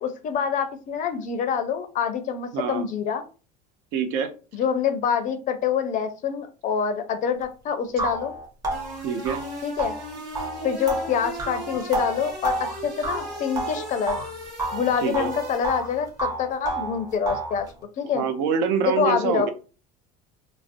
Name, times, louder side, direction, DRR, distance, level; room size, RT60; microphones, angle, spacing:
voice 1, 0.0-3.2 4.5-8.3 9.6-9.9 10.6-14.2 14.7-17.7 18.0-18.2 18.8-19.5, left 7 dB, 40° left, 9 dB, 0.4 m, -26 dB
voice 2, 2.5-2.9 3.9-4.3 9.0-9.4 15.0-15.3 18.1-19.5, right 6 dB, 65° right, 8 dB, 0.5 m, -25 dB
sound 1, 7.4-7.5 8.0-14.3 14.6-15.9 16.2-17.6, right 3 dB, 20° right, 0.7 m, -30 dB
sound 2, 8.7-16.1, right 1 dB, 85° right, 1.3 m, -38 dB
2.5 x 2.0 x 2.5 m, 0.35 s
supercardioid pair, 115°, 21 cm